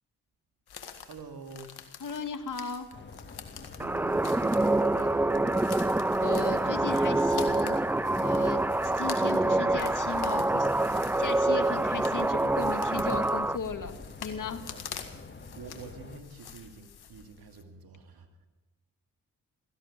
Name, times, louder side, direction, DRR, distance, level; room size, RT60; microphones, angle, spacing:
sound 1, 0.7-17.6, left 8 dB, 70° left, 1.9 m, -46 dB
voice 1, 1.0-1.8 3.8-5.5 14.7-14.8 15.5-18.5, right 4 dB, 65° right, 6 dB, 2.3 m, -46 dB
voice 2, 2.0-2.9 6.2-14.6, left 5 dB, 50° left, 8 dB, 2.0 m, -37 dB
sound 2, 2.9-16.2, left 4 dB, 25° left, 1.9 m, -47 dB
sound 3, 3.8-13.6, right 2 dB, 5° right, 0.4 m, -26 dB
17.0 x 15.5 x 5.2 m, 1.2 s
supercardioid pair, 45°, 39 cm